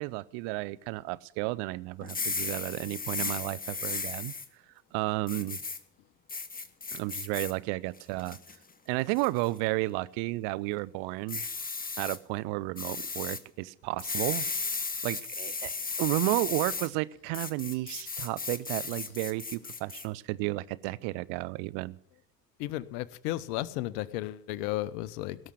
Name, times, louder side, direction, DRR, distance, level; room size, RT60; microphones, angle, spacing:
voice 1, 0.0-4.3 4.9-5.6 6.9-8.4 8.9-11.5 12.0-14.5 15.0-15.7 16.0-22.0, right 20 dB, 60° right, 18 dB, 0.7 m, -32 dB
sound 1, 2.0-4.5 5.3-5.8 6.3-7.5 8.0-8.6 9.2-9.5 11.3-12.2 12.8-13.4 14.0-16.9 17.3-20.0, left 4 dB, 15° left, 1.2 m, -35 dB
voice 2, 22.6-25.4, left 15 dB, 70° left, 18 dB, 0.9 m, -34 dB
17.5 x 6.5 x 8.6 m, 0.70 s
hypercardioid pair, 60°, 48 cm